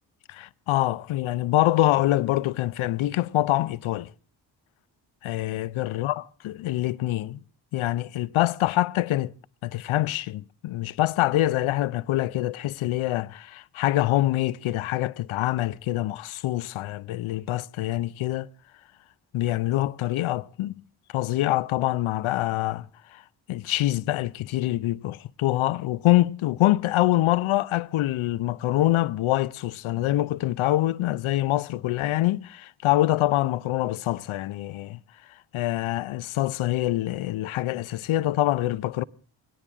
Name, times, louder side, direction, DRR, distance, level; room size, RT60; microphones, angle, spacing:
voice 1, 0.3-4.1 5.2-7.4 7.7-9.3 9.6-18.5 19.3-20.7 21.1-22.9 23.1-23.2 23.5-35.0 35.5-39.0, left 15 dB, 75° left, 0.7 m, -25 dB
21.0 x 18.0 x 3.6 m
supercardioid pair, 45°, 49 cm